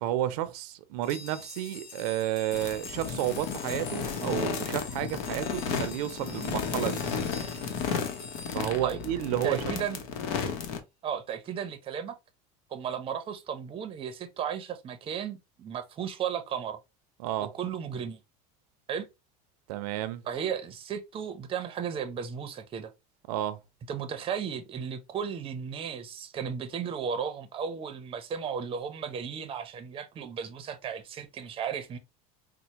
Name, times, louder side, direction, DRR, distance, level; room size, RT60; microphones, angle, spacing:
voice 1, 0.0-7.0 8.5-9.6 17.2-17.5 19.7-20.2 23.3-23.6, right 13 dB, 85° right, 0.5 m, -31 dB
sound 1, 1.0-9.5, left 4 dB, 45° left, 1.1 m, -46 dB
sound 2, 2.5-10.8, left 6 dB, 80° left, 0.8 m, -33 dB
voice 2, 9.4-10.0 11.0-12.1 12.7-16.8 17.5-18.2 18.9-19.1 20.2-22.9 23.9-32.0, right 7 dB, 30° right, 0.6 m, -35 dB
4.2 x 2.0 x 2.8 m
supercardioid pair, 120°, 19 cm